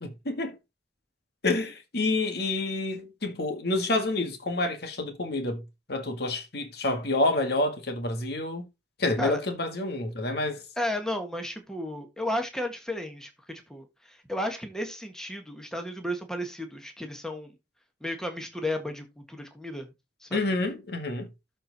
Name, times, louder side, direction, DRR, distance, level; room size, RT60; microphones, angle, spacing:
voice 1, 0.0-0.5 1.4-5.6 5.9-8.7 9.0-10.6 20.3-21.3, left 2 dB, 60° left, 2.0 m, -28 dB
voice 2, 10.8-17.5 18.0-19.9 20.2-20.4, left 1 dB, 5° left, 1.5 m, -33 dB
13.0 x 4.5 x 4.1 m
head